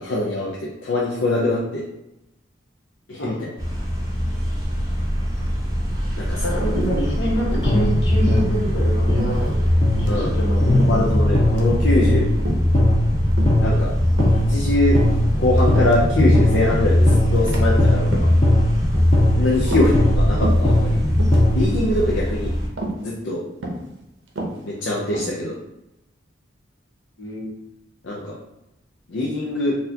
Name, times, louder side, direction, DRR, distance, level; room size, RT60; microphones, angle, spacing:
voice 1, 0.0-1.8 3.1-3.3 6.2-6.4 10.0-10.3 10.9-12.3 13.6-13.9 14.5-15.0 15.4-18.3 19.4-21.0 21.5-22.5 23.0-23.4 24.6-25.6 28.0-28.4 29.1-29.8, left 2 dB, 85° left, -4 dB, 0.5 m, -23 dB
sound 1, 3.6-22.7, equal, 20° right, 0.7 m, -24 dB
voice 2, 6.4-9.6 10.0-10.9 19.6-19.9 27.2-27.5, right 1 dB, 65° left, -6 dB, 1.3 m, -26 dB
sound 2, 6.7-7.2 7.5-7.8 8.3-8.6 9.2-9.7 10.0-10.2 10.8-11.1 11.5-11.8 12.5-12.7 13.4-13.7 14.2-14.4 14.9-16.1 16.5-16.8 17.3-17.6 18.0-18.4 18.9-19.2 19.6-20.2 20.4-20.7 21.1-21.4 22.0-22.3 22.8-23.0 23.6-23.9 24.3-25.4, right 2 dB, 85° right, 0.7 m, -31 dB
sound 3, 7.7-21.7, left 1 dB, 25° left, 0.6 m, -19 dB
4.1 x 2.5 x 2.7 m, 0.91 s
head